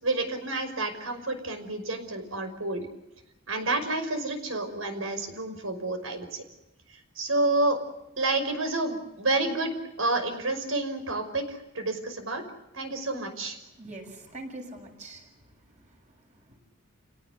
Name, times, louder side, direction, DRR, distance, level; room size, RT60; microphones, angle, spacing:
voice 1, 0.0-2.9 3.5-6.4 7.2-7.8 8.2-12.4 12.7-13.6, right 2 dB, 85° right, 7 dB, 5.6 m, -29 dB
voice 2, 13.6-15.3 15.9-16.0 16.5-16.6, right 2 dB, 35° right, 2 dB, 7.1 m, -43 dB
29.5 x 18.0 x 8.3 m, 0.94 s
head